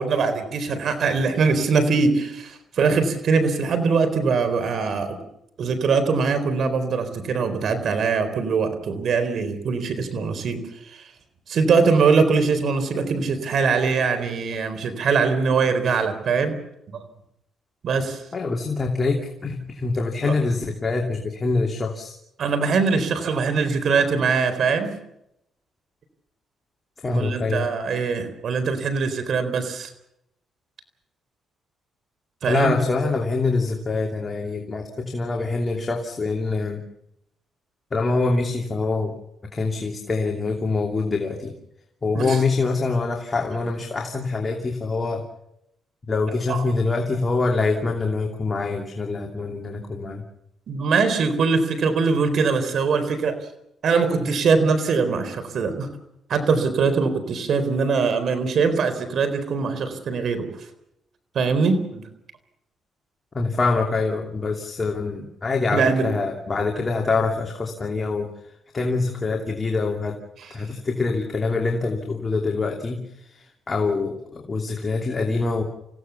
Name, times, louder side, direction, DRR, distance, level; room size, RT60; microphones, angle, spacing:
voice 1, 0.0-5.2 5.6-11.1 11.5-16.5 16.9-17.0 17.8-18.2 20.2-20.3 22.4-24.9 27.1-29.9 32.4-32.7 42.1-42.4 46.5-46.6 50.7-53.4 53.8-55.9 56.3-60.5 61.3-62.1 65.7-66.1 70.4-70.5, right 5 dB, 60° right, 10 dB, 4.1 m, -22 dB
voice 2, 18.3-22.1 27.0-27.7 32.4-36.8 37.9-39.1 39.5-41.5 42.0-45.2 46.1-50.2 63.3-68.3 68.7-70.2 70.5-75.6, left 3 dB, 30° left, 2 dB, 2.8 m, -25 dB
28.0 x 16.5 x 7.2 m, 0.82 s
cardioid pair, 90°, 0 cm